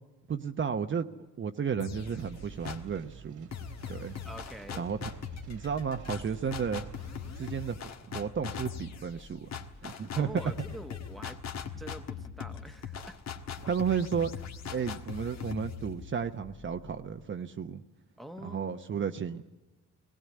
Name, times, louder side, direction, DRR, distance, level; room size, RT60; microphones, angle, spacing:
voice 1, 0.3-1.1 1.4-3.5 3.9-4.2 4.8-5.1 5.5-6.8 7.4-7.8 8.1-10.4 13.7-14.3 14.7-17.8 18.4-19.4, right 7 dB, 40° right, 7 dB, 0.9 m, -33 dB
sound 1, 1.8-3.0 3.5-17.2, left 7 dB, 60° left, 1.6 m, -41 dB
sound 2, 1.9-7.6, right 7 dB, 75° right, 2.4 m, -50 dB
voice 2, 4.2-4.9 10.1-11.4 11.8-13.2 18.2-19.1, right 1 dB, ahead, 7 dB, 1.2 m, -46 dB
19.5 x 17.0 x 9.5 m, 1.1 s
cardioid pair, 90°, 30 cm